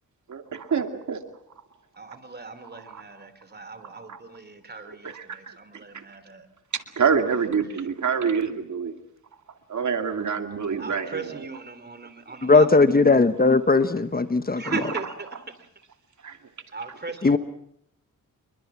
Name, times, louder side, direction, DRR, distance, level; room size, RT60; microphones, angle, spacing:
voice 1, 0.3-1.2 2.7-3.0 4.1-4.2 4.8-5.5 5.9-6.0 6.7-8.9 9.7-11.5 14.6-14.8 16.2-16.4, right 6 dB, 60° right, 6 dB, 2.5 m, -27 dB
voice 2, 2.0-6.5 10.8-12.7 14.6-15.4 16.7-17.4, right 4 dB, 30° right, 11 dB, 3.2 m, -37 dB
voice 3, 12.4-14.6 17.2-17.4, left 3 dB, 25° left, 11 dB, 1.2 m, -18 dB
28.5 x 23.0 x 6.0 m, 0.72 s
cardioid pair, 100°, 34 cm